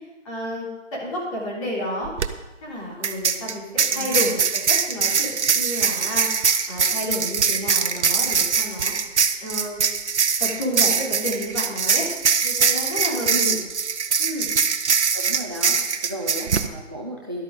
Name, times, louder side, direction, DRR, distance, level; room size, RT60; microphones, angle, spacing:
voice 1, 0.2-2.1 2.6-6.3 6.7-8.9 9.4-9.8 10.4-12.1 12.4-13.5 14.2-14.5, left 1 dB, 25° left, -6 dB, 3.8 m, -30 dB
sound 1, 2.0-2.3 3.0-16.7, right 6 dB, 60° right, 0.8 m, -22 dB
voice 2, 3.9-4.2 13.2-13.6 15.1-17.4, right 1 dB, 20° right, 0 dB, 0.5 m, -34 dB
13.0 x 12.0 x 3.8 m, 1.1 s
figure-of-eight pair, 160°, 38 cm